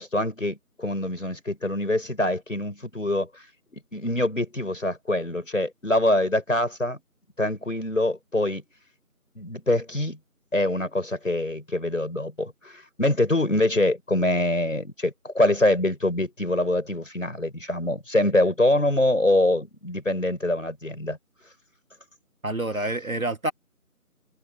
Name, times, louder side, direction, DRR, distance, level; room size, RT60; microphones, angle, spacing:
voice 1, 0.0-3.3 3.7-7.0 7.4-8.6 9.4-10.2 10.5-21.2, left 1 dB, 55° left, 5.4 m, -24 dB
voice 2, 22.4-23.5, right 1 dB, 60° right, 1.8 m, -27 dB
figure-of-eight pair, 175°, 46 cm